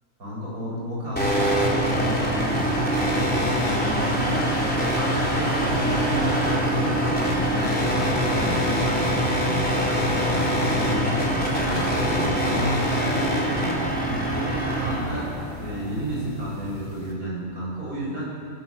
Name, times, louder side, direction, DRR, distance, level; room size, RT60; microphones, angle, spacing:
voice 1, 0.2-4.4 4.8-7.0 7.3-11.3 11.6-18.3, equal, 90° right, -5 dB, 8.5 m, -31 dB
sound 1, 1.2-17.1, equal, 5° left, 3.9 m, -24 dB
25.5 x 16.5 x 7.4 m, 2.2 s
omnidirectional pair, 1.5 m